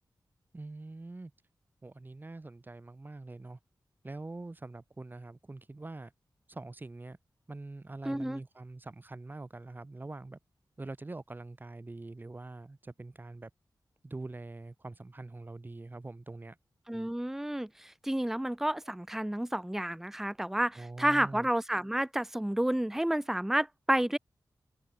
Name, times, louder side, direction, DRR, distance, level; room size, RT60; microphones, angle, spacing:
voice 1, 0.5-1.3 1.8-3.6 4.0-6.1 6.5-7.2 7.5-10.4 10.8-13.5 14.0-16.6 20.8-21.5, right 2 dB, 25° right, 2.2 m, -44 dB
voice 2, 8.1-8.4 16.9-24.2, right 1 dB, 5° right, 0.7 m, -30 dB
wide cardioid pair, 140°, 8 cm